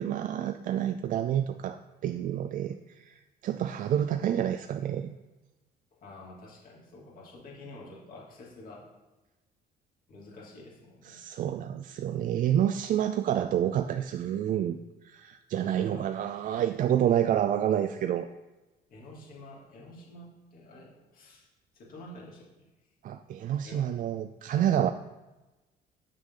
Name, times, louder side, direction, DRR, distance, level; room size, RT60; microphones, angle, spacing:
voice 1, 0.0-5.1 11.1-14.8 15.0-18.3 23.0-24.9, right 10 dB, 55° right, 9 dB, 0.4 m, -28 dB
voice 2, 5.9-8.9 10.1-11.2 15.9-16.6 18.9-21.5 21.7-22.7 23.6-24.0, left 2 dB, 55° left, -4 dB, 2.8 m, -49 dB
8.4 x 6.1 x 3.8 m, 1.1 s
cardioid pair, 110°, 17 cm